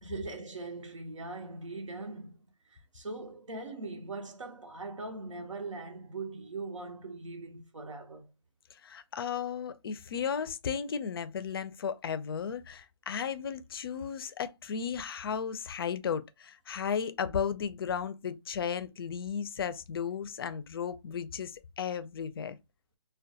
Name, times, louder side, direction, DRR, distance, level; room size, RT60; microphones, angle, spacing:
voice 1, 0.0-2.4 2.6-8.3, right 3 dB, 85° right, 0.8 m, -41 dB
voice 2, 8.7-22.6, left 7 dB, 50° left, 0.4 m, -35 dB
2.2 x 2.2 x 2.7 m
hypercardioid pair, 155°, 16 cm